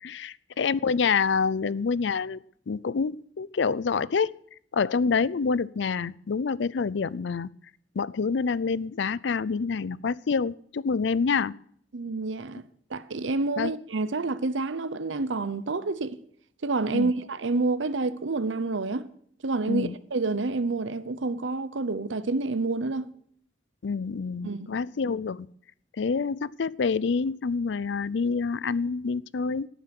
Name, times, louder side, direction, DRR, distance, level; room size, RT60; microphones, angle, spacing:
voice 1, 0.0-4.3 4.7-7.5 8.0-11.5 13.6-13.7 16.9-17.1 19.7-20.0 23.8-25.5 26.0-29.7, left 5 dB, 70° left, 0.5 m, -27 dB
voice 2, 11.9-16.2 16.6-19.1 19.4-23.1 24.4-24.7, right 3 dB, 85° right, 0.8 m, -28 dB
18.0 x 10.0 x 6.1 m
head